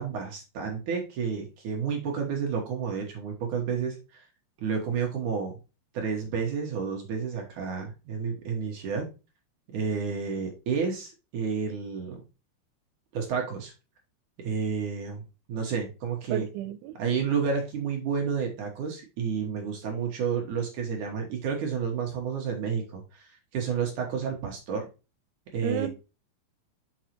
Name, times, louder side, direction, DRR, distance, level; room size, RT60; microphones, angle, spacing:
voice 1, 0.0-4.0 4.6-5.6 5.9-9.1 9.7-12.2 13.1-13.7 14.4-16.5 17.0-24.8 25.5-25.9, right 6 dB, 65° right, 2.0 m, -30 dB
voice 2, 16.3-17.0 25.6-25.9, right 12 dB, 90° right, 3.0 m, -31 dB
6.4 x 6.4 x 3.0 m
omnidirectional pair, 5.4 m